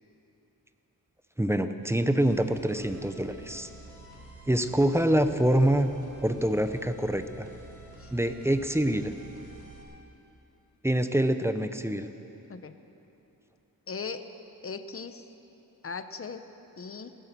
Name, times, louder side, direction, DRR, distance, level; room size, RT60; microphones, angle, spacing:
voice 1, 1.4-3.7 4.5-5.9 6.2-7.5 8.1-9.1 10.8-12.1, right 1 dB, 5° right, 9 dB, 0.6 m, -25 dB
sound 1, 2.2-9.8, right 2 dB, 60° right, 3.2 m, -49 dB
voice 2, 13.9-14.3 14.6-15.2 15.8-16.5 16.8-17.1, left 5 dB, 40° left, 10 dB, 0.7 m, -38 dB
17.0 x 11.5 x 6.7 m, 2.9 s
wide cardioid pair, 120°, 35 cm